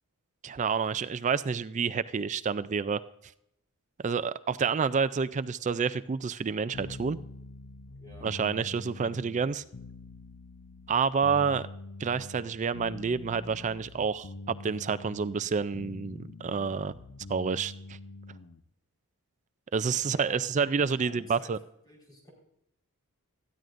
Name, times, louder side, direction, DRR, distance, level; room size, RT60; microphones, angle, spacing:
voice 1, 0.4-3.0 4.0-7.2 8.2-9.6 10.9-11.7 12.0-16.9 17.3-18.0 19.7-21.6, right 5 dB, 35° right, 15 dB, 0.4 m, -29 dB
sound 1, 6.7-18.6, left 2 dB, 70° left, 0.8 m, -45 dB
voice 2, 8.0-8.3 20.0-20.4 21.0-21.5 21.8-22.3, equal, 20° left, -3 dB, 4.3 m, -50 dB
20.0 x 14.0 x 2.6 m, 0.79 s
head